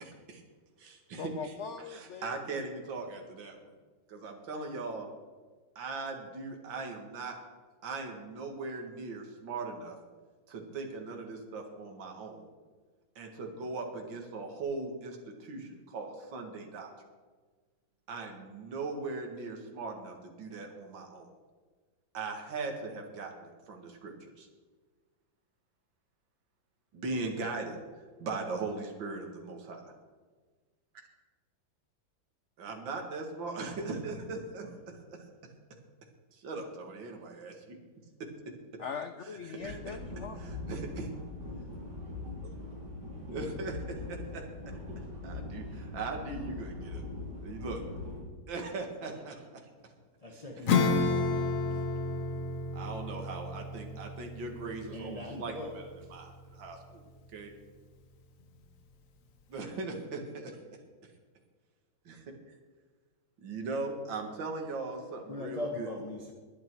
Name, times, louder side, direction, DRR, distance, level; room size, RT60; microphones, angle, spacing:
voice 1, 0.0-0.4 0.8-3.7 4.1-5.1 5.8-7.3 7.8-10.0 10.5-12.5 13.2-16.9 18.1-21.3 22.1-24.5 26.9-27.8 28.2-29.9 32.6-35.3 36.3-37.8 39.4-40.0 40.4-41.1 43.3-44.8 45.2-47.1 47.4-47.8 48.5-49.6 50.7-50.9 52.7-57.0 57.3-57.5 59.5-60.6 62.1-62.2 63.4-65.9, right 3 dB, 70° right, 3 dB, 2.5 m, -39 dB
voice 2, 1.2-2.7 38.8-40.4, left 6 dB, 80° left, 9 dB, 0.6 m, -41 dB
sound 1, 39.6-48.2, left 2 dB, 55° right, 4.3 m, -41 dB
voice 3, 50.2-51.0 54.9-56.1 65.3-66.3, left 1 dB, 20° left, 1 dB, 1.3 m, -40 dB
Acoustic guitar / Strum, 50.7-56.7, left 3 dB, 50° left, 1.2 m, -32 dB
21.0 x 8.8 x 4.7 m, 1.4 s
omnidirectional pair, 2.1 m